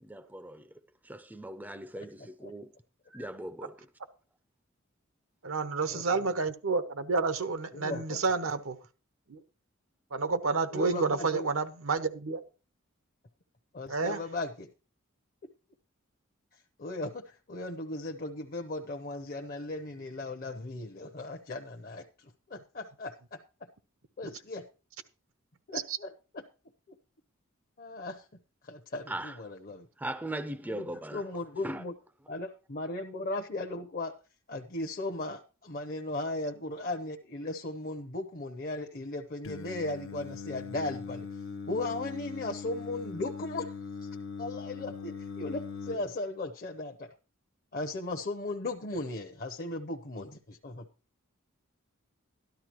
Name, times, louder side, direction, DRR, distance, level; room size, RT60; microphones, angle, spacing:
voice 1, 0.0-0.7 1.0-2.7 3.1-3.7 29.1-29.3 30.0-31.2 31.6-31.8, right 1 dB, 10° right, 0.4 m, -39 dB
voice 2, 2.0-2.5 5.9-6.3 7.7-8.2 10.7-11.5 13.7-14.7 16.5-23.7 24.2-24.7 25.7-26.4 26.9-27.0 27.8-28.3 28.6-29.9 30.7-31.9 32.3-34.1 34.5-44.1 44.4-47.1 47.7-50.9, left 2 dB, 45° left, 0.7 m, -37 dB
voice 3, 5.4-8.8 9.3-9.4 10.1-12.4 13.9-14.2 25.7-26.0, right 4 dB, 80° right, 0.8 m, -30 dB
Singing, 39.4-46.0, left 5 dB, 70° left, 0.9 m, -40 dB
13.0 x 11.5 x 3.0 m
head